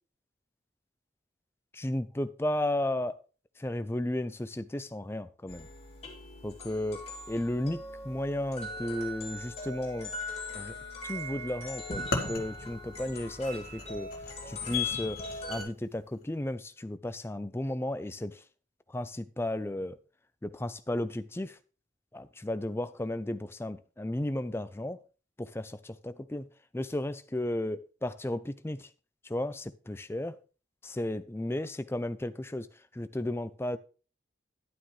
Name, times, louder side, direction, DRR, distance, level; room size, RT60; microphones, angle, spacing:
voice 1, 1.7-3.2 3.6-5.7 6.4-7.0 7.3-10.1 10.5-10.7 11.0-14.1 14.5-15.2 15.5-18.4 18.9-20.0 20.4-21.5 22.1-25.0 25.4-26.5 26.7-28.9 29.3-30.3 30.8-32.7 32.9-33.8, left 1 dB, 10° left, 0.4 m, -34 dB
sound 1, 5.5-15.6, left 3 dB, 30° left, 2.7 m, -40 dB
sound 2, 11.9-15.7, left 2 dB, 50° left, 1.5 m, -38 dB
11.5 x 8.9 x 3.2 m
head